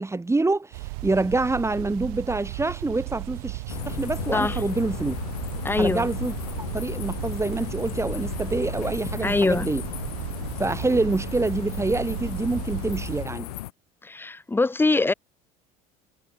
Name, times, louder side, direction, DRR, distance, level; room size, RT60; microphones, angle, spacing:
voice 1, 0.0-5.2 5.8-6.3 6.7-9.8 10.6-13.5, right 2 dB, 15° right, 4.3 m, -26 dB
sound 1, 0.7-13.3, right 28 dB, 75° right, 3.0 m, -35 dB
sound 2, 3.7-13.7, left 16 dB, 80° left, 3.3 m, -35 dB
voice 2, 5.6-6.1 9.2-9.7 14.0-15.1, left 3 dB, 10° left, 0.9 m, -23 dB
hypercardioid pair, 70°, 19 cm